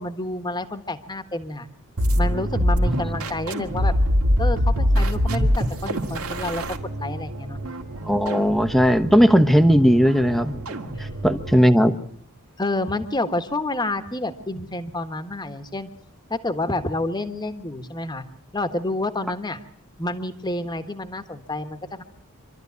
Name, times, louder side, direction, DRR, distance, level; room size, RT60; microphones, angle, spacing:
voice 1, 0.0-1.7 2.1-3.9 4.4-6.6 7.0-7.6 11.0-11.1 12.6-15.9 16.3-18.2 18.5-19.6 20.0-22.0, left 2 dB, 20° left, 9 dB, 1.3 m, -29 dB
sound 1, 2.0-11.7, equal, 80° right, 2.2 m, -24 dB
voice 2, 8.1-12.0, equal, ahead, 11 dB, 1.0 m, -18 dB
26.0 x 13.0 x 9.5 m, 0.65 s
head